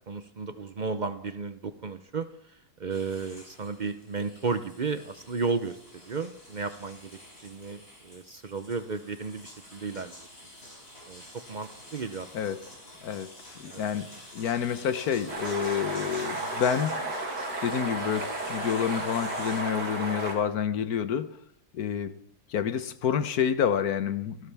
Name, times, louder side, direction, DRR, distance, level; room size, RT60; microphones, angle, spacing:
voice 1, 0.1-5.8 6.0-7.1 7.4-10.3 11.1-11.2 11.5-12.3 13.7-13.8, right 4 dB, 55° right, 10 dB, 0.5 m, -33 dB
sound 1, 2.9-19.6, left 1 dB, 40° left, 5.1 m, -48 dB
voice 2, 13.6-17.2 17.6-21.3 21.7-22.2 22.5-24.5, left 8 dB, 65° left, 12 dB, 1.4 m, -28 dB
sound 2, 15.3-20.3, right 2 dB, 85° right, 3.2 m, -33 dB
27.5 x 12.5 x 3.5 m, 0.75 s
omnidirectional pair, 1.8 m